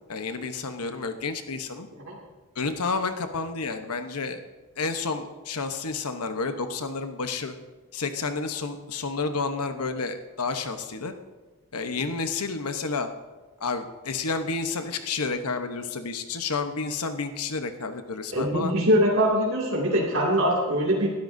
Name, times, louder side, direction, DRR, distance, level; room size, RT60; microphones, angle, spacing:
voice 1, 0.1-1.9 2.6-4.4 4.8-7.5 7.9-11.1 11.7-13.1 13.6-18.7, left 4 dB, 90° left, 7 dB, 1.0 m, -30 dB
voice 2, 18.3-21.1, equal, 65° right, -4 dB, 2.4 m, -22 dB
19.5 x 12.5 x 2.7 m, 1.2 s
head